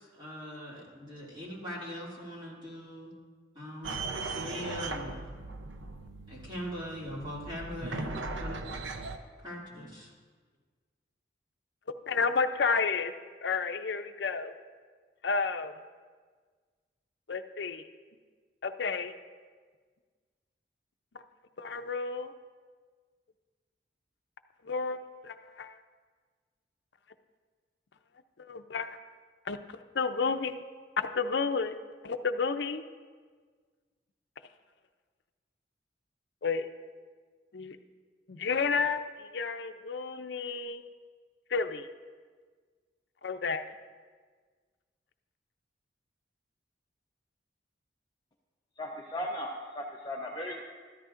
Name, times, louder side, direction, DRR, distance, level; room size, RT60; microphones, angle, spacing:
voice 1, 0.0-3.1 3.5-5.3 6.3-8.6 9.4-10.1, equal, 25° right, -5 dB, 2.4 m, -41 dB
sound 1, 3.8-9.2, right 3 dB, 80° right, 0.7 m, -38 dB
voice 2, 12.1-13.1 13.4-14.5 15.2-15.7 17.3-17.8 18.6-19.1 21.6-22.3 24.6-25.0 25.2-25.7 28.4-29.0 29.5-30.6 31.0-31.7 32.0-32.8 36.4-36.7 37.5-37.8 38.3-40.9 41.5-41.9 43.2-43.6, left 5 dB, 65° left, 9 dB, 0.5 m, -31 dB
voice 3, 48.8-50.6, left 1 dB, 20° left, -2 dB, 0.7 m, -37 dB
13.5 x 13.0 x 2.5 m, 1.5 s
head